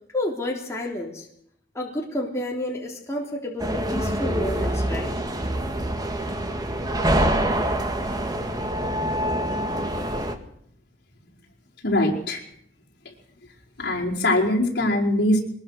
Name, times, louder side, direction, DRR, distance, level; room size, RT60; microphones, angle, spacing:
voice 1, 0.1-1.3 1.7-5.2, left 1 dB, 15° left, -2 dB, 3.5 m, -30 dB
sound 1, 3.6-10.4, right 1 dB, 20° right, 2.0 m, -25 dB
voice 2, 11.8-12.4 13.8-15.4, left 1 dB, 60° left, -2 dB, 4.9 m, -22 dB
22.5 x 21.0 x 6.6 m, 0.67 s
head